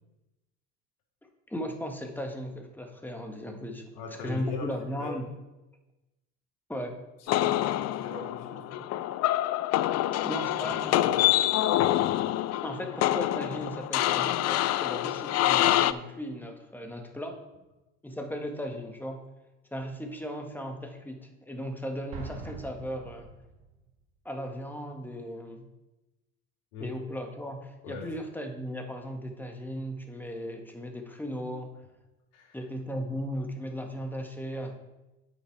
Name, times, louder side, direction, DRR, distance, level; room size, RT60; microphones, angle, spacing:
voice 1, 1.5-3.8 4.2-5.2 6.7-7.1 10.2-11.2 12.6-17.4 18.0-19.2 19.7-23.3 24.2-25.7 26.8-31.7 32.5-34.7, equal, 5° left, 3 dB, 1.7 m, -36 dB
voice 2, 3.9-4.7 5.0-5.1 7.2-8.9 11.7-12.2 26.7-26.9 27.8-28.1 32.3-32.6, left 5 dB, 70° left, -2 dB, 3.0 m, -40 dB
sound 1, 7.3-15.9, left 14 dB, 45° left, 0.5 m, -26 dB
Explosion, 22.1-23.9, right 4 dB, 65° right, 2.2 m, -43 dB
8.7 x 5.9 x 4.7 m, 1.0 s
hypercardioid pair, 70°, 36 cm